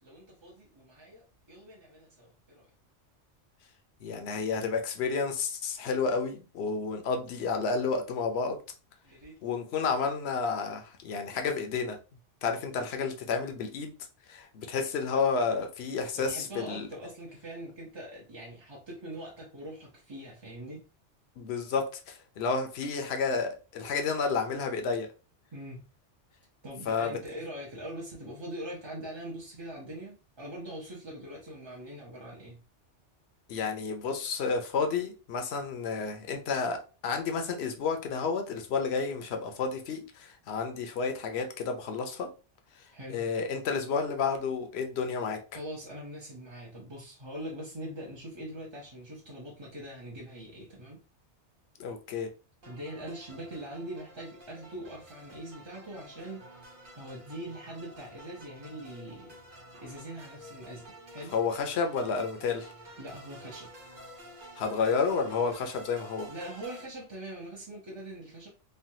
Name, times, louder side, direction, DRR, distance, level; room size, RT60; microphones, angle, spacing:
voice 1, 0.0-2.7 9.0-9.4 15.4-15.6 16.3-20.8 25.5-25.8 26.6-32.6 42.9-43.2 45.5-51.0 52.7-59.4 59.8-61.4 63.0-63.7 66.3-68.5, right 1 dB, 30° right, 0.6 m, -42 dB
voice 2, 4.0-8.6 9.4-12.0 12.4-13.9 14.3-16.9 21.4-25.1 26.9-27.1 33.5-42.3 43.1-45.4 51.8-52.3 61.3-62.7 64.6-66.3, left 5 dB, 65° left, 0.8 m, -31 dB
sound 1, 52.6-66.9, equal, 50° right, 1.1 m, -50 dB
3.2 x 2.3 x 2.7 m
omnidirectional pair, 1.2 m